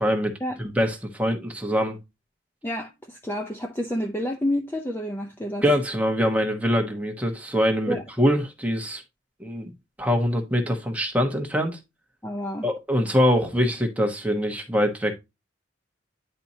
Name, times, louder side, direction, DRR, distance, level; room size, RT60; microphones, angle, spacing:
voice 1, 0.0-0.3 0.6-2.0 5.6-9.0 9.4-9.7 10.0-11.8 12.6-15.1, equal, 5° right, 1.1 m, -23 dB
voice 2, 2.6-5.6 7.9-8.0 12.2-12.7, left 1 dB, 10° left, 0.6 m, -29 dB
9.9 x 4.2 x 2.7 m
head